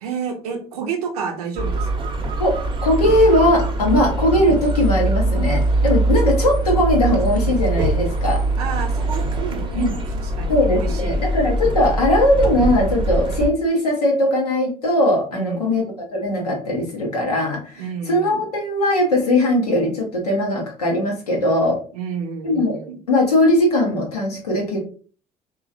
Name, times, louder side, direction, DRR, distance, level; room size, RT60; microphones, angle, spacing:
voice 1, 0.0-2.1 8.6-11.2 15.3-15.8 17.8-18.4 21.9-23.0, right 6 dB, 80° right, 4 dB, 0.5 m, -30 dB
sound 1, 1.6-13.5, right 2 dB, 25° right, 0.7 m, -22 dB
voice 2, 2.8-8.4 9.7-9.9 10.5-15.8 16.1-21.8 22.4-22.8 23.1-24.8, left 1 dB, 90° left, -2 dB, 0.8 m, -19 dB
3.0 x 2.4 x 2.5 m, 0.40 s
hypercardioid pair, 55°, 19 cm